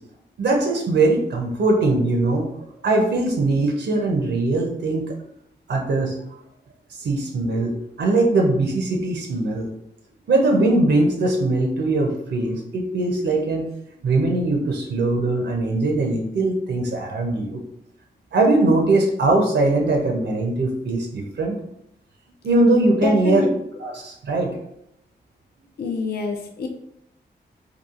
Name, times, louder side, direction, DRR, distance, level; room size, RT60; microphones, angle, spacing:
voice 1, 0.4-2.5 2.8-5.1 5.7-6.2 7.0-9.7 10.3-13.7 14.0-17.6 18.3-21.5 22.4-23.4 23.8-24.5, right 2 dB, 75° right, 2 dB, 0.5 m, -21 dB
voice 2, 23.0-23.5 25.8-26.7, left 4 dB, 60° left, 3 dB, 0.4 m, -26 dB
2.9 x 2.3 x 2.3 m, 0.76 s
cardioid pair, 50°, 18 cm